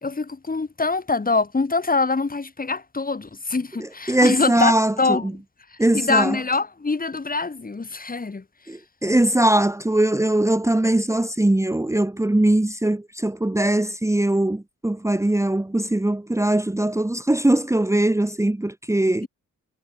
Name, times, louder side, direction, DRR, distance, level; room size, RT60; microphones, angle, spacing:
voice 1, 0.0-5.2 5.9-8.4, left 3 dB, 25° left, 2.7 m, -24 dB
voice 2, 3.8-5.3 5.8-6.4 8.7-19.3, right 1 dB, 10° right, 1.6 m, -21 dB
cardioid pair, 80°, 32 cm